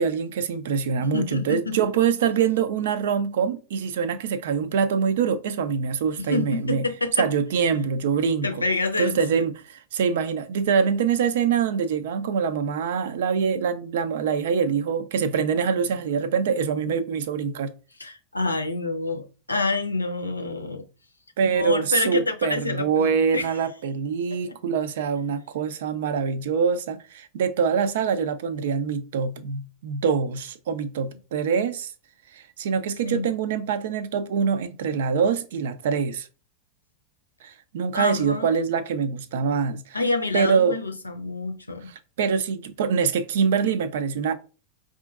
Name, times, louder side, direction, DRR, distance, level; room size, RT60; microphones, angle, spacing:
voice 1, 0.0-6.8 7.2-8.5 9.0-17.7 21.4-31.9 32.3-36.3 37.4-40.0 40.3-40.8 42.2-44.3, right 6 dB, 55° right, 0.4 m, -24 dB
voice 2, 1.0-1.9 6.2-7.3 8.4-9.4 16.8-16.9 18.0-20.8 21.5-23.6 24.5-24.6 33.0-33.3 37.9-38.6 39.9-41.9, left 3 dB, 80° left, 0.5 m, -28 dB
4.9 x 2.5 x 2.3 m
figure-of-eight pair, 90°, 0 cm